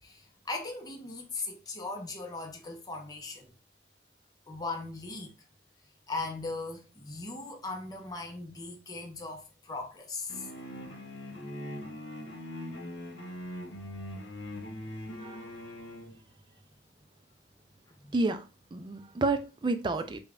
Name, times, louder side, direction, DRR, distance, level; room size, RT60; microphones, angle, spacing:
voice 1, 0.0-3.5 4.5-5.3 6.1-10.5 18.0-18.1, left 3 dB, 20° left, 0.6 m, -38 dB
sound 1, 10.3-16.2, left 1 dB, 75° left, 0.8 m, -41 dB
voice 2, 15.2-15.5 18.1-18.5 18.7-20.2, right 3 dB, 25° right, 0.4 m, -30 dB
5.1 x 2.2 x 2.4 m
head